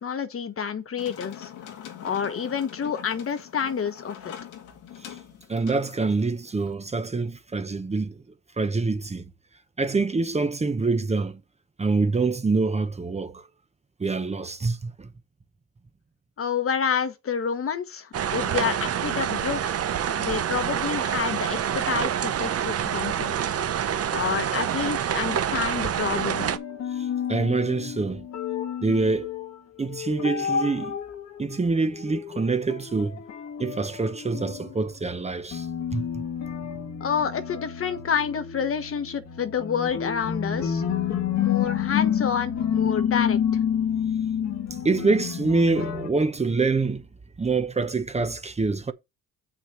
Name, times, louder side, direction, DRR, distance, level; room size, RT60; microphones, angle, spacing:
voice 1, 0.0-1.5 2.0-4.3 16.4-19.7 20.2-23.6 24.1-26.4 37.0-40.8 41.4-43.6, left 7 dB, 45° left, 1.3 m, -28 dB
sound 1, 1.0-6.7, left 9 dB, 85° left, 2.0 m, -43 dB
voice 2, 5.5-8.2 8.6-9.2 9.8-11.4 11.8-13.5 14.0-15.1 26.9-28.3 28.8-29.3 29.8-31.0 31.4-33.2 33.6-36.1 44.8-47.0 47.4-48.9, right 3 dB, 20° right, 0.9 m, -25 dB
sound 2, 18.1-26.6, right 9 dB, 55° right, 0.9 m, -27 dB
sound 3, 26.2-29.6 29.8-34.7 35.1-35.2 35.5-46.1, left 8 dB, 65° left, 1.7 m, -29 dB
7.3 x 6.2 x 4.3 m
cardioid pair, 90°, 30 cm